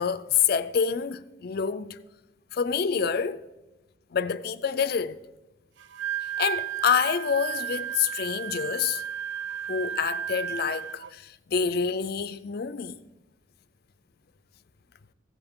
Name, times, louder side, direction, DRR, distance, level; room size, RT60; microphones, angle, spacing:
voice 1, 0.0-2.0 2.5-3.5 4.1-5.2 6.4-9.0 9.7-13.0, left 6 dB, 50° left, 0.4 m, -27 dB
Wind instrument woodwind instrument, 5.8-11.1, right 10 dB, 65° right, 0.4 m, -33 dB
15.0 x 7.9 x 3.6 m
head